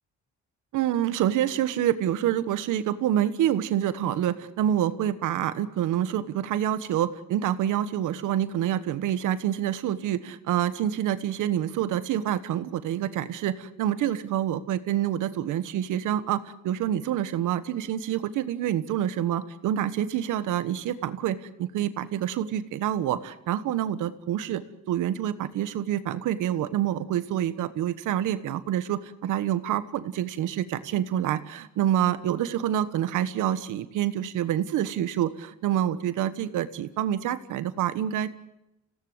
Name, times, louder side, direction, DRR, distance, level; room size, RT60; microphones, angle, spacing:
voice 1, 0.7-38.3, right 11 dB, 85° right, 13 dB, 1.3 m, -27 dB
27.0 x 17.0 x 8.0 m, 0.93 s
cardioid pair, 90°, 30 cm